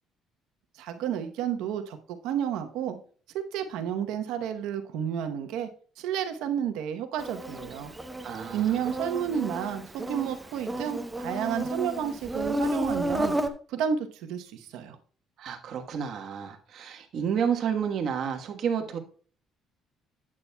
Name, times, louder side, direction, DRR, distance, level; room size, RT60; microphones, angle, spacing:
voice 1, 0.7-3.0 3.3-5.7 6.0-7.9 8.5-13.3 13.7-15.0, right 8 dB, 90° right, 7 dB, 0.9 m, -31 dB
Insect, 7.2-13.5, right 1 dB, 10° right, 0.7 m, -32 dB
voice 2, 8.2-8.9 15.4-19.0, right 7 dB, 55° right, 4 dB, 1.2 m, -30 dB
11.5 x 8.6 x 2.2 m, 0.42 s
cardioid pair, 125°, 0 cm